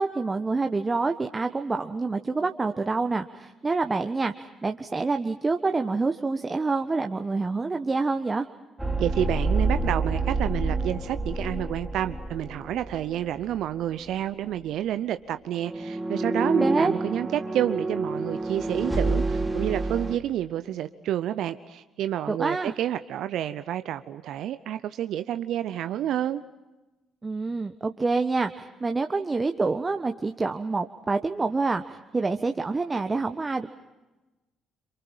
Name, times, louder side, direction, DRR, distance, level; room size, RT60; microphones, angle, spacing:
voice 1, 0.0-8.5 16.6-16.9 22.3-22.7 27.2-33.8, right 3 dB, 25° right, 6 dB, 1.3 m, -27 dB
sound 1, 8.8-13.6 13.9-14.1 15.6-20.2, right 2 dB, 10° right, 3.5 m, -28 dB
voice 2, 9.0-26.4, right 11 dB, 65° right, 11 dB, 0.7 m, -29 dB
28.5 x 27.5 x 5.7 m, 1.1 s
hypercardioid pair, 45°, 0 cm